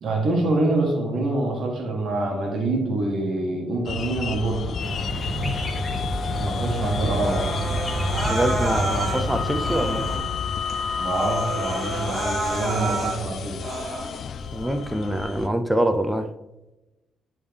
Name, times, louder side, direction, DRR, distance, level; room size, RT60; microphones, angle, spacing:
voice 1, 0.0-4.8 6.4-7.5 11.0-13.7, right 2 dB, 60° right, 1.3 m, -25 dB
sound 1, 3.9-15.5, left 6 dB, 60° left, 0.3 m, -31 dB
sound 2, 4.8-10.2, right 1 dB, 15° left, 1.7 m, -28 dB
Human voice, 7.2-9.2 9.6-10.3 10.7-10.8 11.1-13.2 13.6-14.2, right 1 dB, 30° right, 2.1 m, -29 dB
voice 2, 8.2-10.1 14.5-16.3, right 1 dB, 5° right, 0.6 m, -25 dB
9.9 x 3.6 x 3.4 m
cardioid pair, 90°, 0 cm